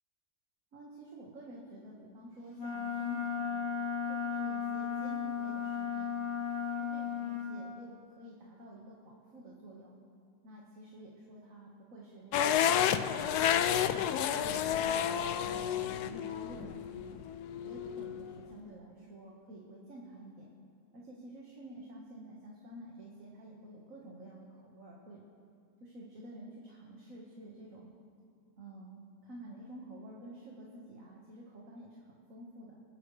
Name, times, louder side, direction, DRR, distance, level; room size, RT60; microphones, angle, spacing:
voice 1, 0.7-3.7 4.1-6.4 6.8-10.0 10.4-14.0 14.3-17.2 17.6-20.5 20.9-25.2 25.8-28.0 28.6-32.8, right 1 dB, 45° right, -3 dB, 1.9 m, -50 dB
Wind instrument woodwind instrument, 2.6-7.5, left 7 dB, 40° left, 1.4 m, -35 dB
sound 1, 12.3-18.4, left 9 dB, 70° left, 1.0 m, -31 dB
26.5 x 10.0 x 3.3 m, 2.2 s
omnidirectional pair, 2.0 m